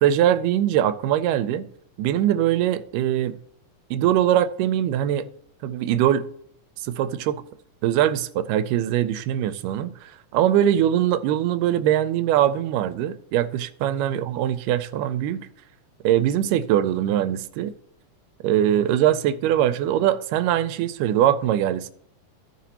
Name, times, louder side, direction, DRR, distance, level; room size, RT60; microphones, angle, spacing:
voice 1, 0.0-1.7 2.0-3.4 3.9-5.3 5.6-6.3 6.8-7.4 7.8-15.5 16.0-17.7 18.4-21.9, right 11 dB, 90° right, 2.1 m, -22 dB
15.0 x 5.1 x 2.9 m
omnidirectional pair, 3.7 m